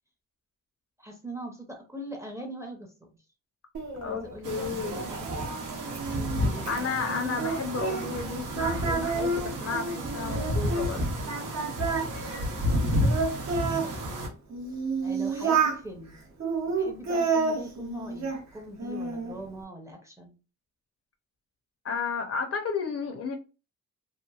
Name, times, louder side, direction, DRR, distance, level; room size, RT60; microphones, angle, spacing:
voice 1, 1.0-3.1 4.0-5.2 6.1-7.0 12.5-13.1 13.4-13.5 13.8-14.3 15.0-16.1 16.7-20.4, right 1 dB, 10° right, 0.5 m, -42 dB
Singing, 3.7-8.3 8.5-10.9 11.3-13.9 14.5-15.8 16.4-18.4 18.8-19.4, right 4 dB, 60° right, 0.7 m, -30 dB
voice 2, 4.0-5.1 6.7-11.1 21.8-23.4, left 5 dB, 50° left, 0.5 m, -32 dB
sound 1, 4.4-14.3, equal, 90° right, 0.8 m, -31 dB
2.9 x 2.4 x 2.3 m
wide cardioid pair, 160°, 31 cm